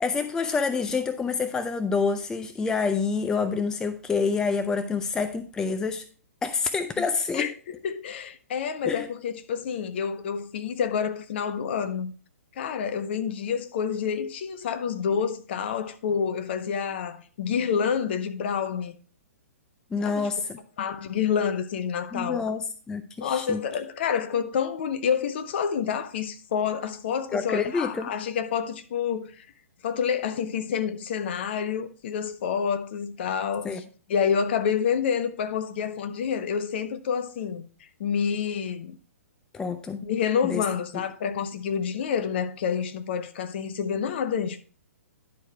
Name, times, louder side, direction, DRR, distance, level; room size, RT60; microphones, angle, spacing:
voice 1, 0.0-6.0 6.4-7.5 8.9-9.1 19.9-20.6 22.1-23.6 27.3-28.1 33.6-33.8 39.5-40.1 40.4-40.6 40.9-41.0, left 5 dB, 10° left, 0.4 m, -27 dB
voice 2, 7.8-12.1 12.6-18.9 20.0-20.3 20.8-22.4 23.2-29.5 29.8-33.8 34.1-37.7 38.0-39.0 40.0-44.6, left 7 dB, 45° left, 0.8 m, -28 dB
10.5 x 4.5 x 4.6 m
figure-of-eight pair, 120°, 8 cm